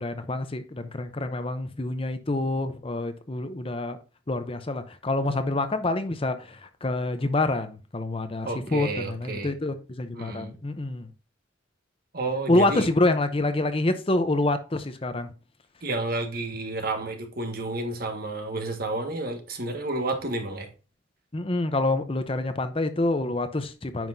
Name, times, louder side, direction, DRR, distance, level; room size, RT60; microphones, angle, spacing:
voice 1, 0.0-4.0 4.3-11.1 12.5-15.3 21.3-24.1, left 2 dB, 30° left, 0.7 m, -27 dB
voice 2, 8.4-9.5 10.1-10.6 12.1-12.9 15.8-20.7, right 2 dB, 50° right, 1.7 m, -31 dB
9.2 x 5.7 x 2.7 m
head